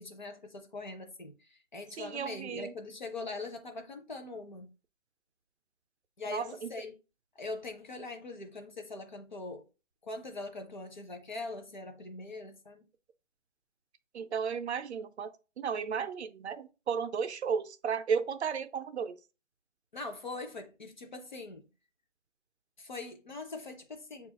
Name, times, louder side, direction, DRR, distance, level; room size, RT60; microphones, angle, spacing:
voice 1, 0.0-4.7 6.2-7.0 7.4-9.7 10.0-12.8 19.9-21.7 22.8-24.3, left 3 dB, 40° left, 0.5 m, -42 dB
voice 2, 2.0-2.7 6.3-6.7 14.1-15.3 15.6-19.2, right 6 dB, 65° right, 0.5 m, -34 dB
6.5 x 2.4 x 2.7 m
hypercardioid pair, 170°, 37 cm